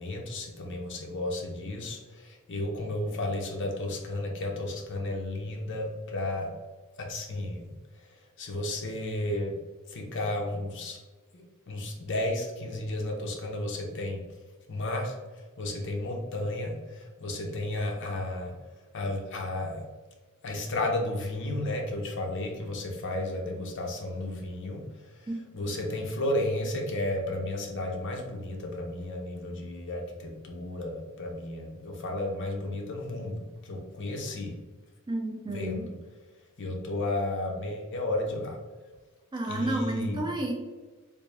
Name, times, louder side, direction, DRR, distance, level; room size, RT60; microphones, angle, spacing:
voice 1, 0.0-6.5 7.0-7.7 8.0-8.1 8.4-9.6 9.9-11.0 11.3-14.2 14.7-18.5 18.9-19.9 20.4-25.3 25.5-34.6 35.5-35.9 36.6-38.6 39.5-40.2, left 1 dB, 55° left, 1 dB, 0.7 m, -33 dB
voice 2, 35.1-35.9 39.3-40.5, right 1 dB, 20° right, 1 dB, 0.4 m, -31 dB
3.4 x 2.5 x 3.2 m, 1.3 s
head